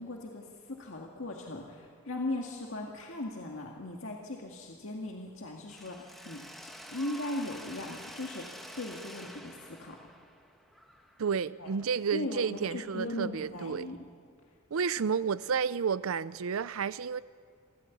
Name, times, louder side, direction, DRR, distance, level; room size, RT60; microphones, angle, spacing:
voice 1, 0.0-10.0 11.6-11.7 12.1-14.0, left 1 dB, 70° left, 2.0 m, -38 dB
Mechanisms, 5.7-11.6, equal, ahead, 1.5 m, -48 dB
voice 2, 11.2-13.9 14.7-17.2, right 6 dB, 80° right, 0.5 m, -31 dB
27.5 x 14.0 x 8.4 m
head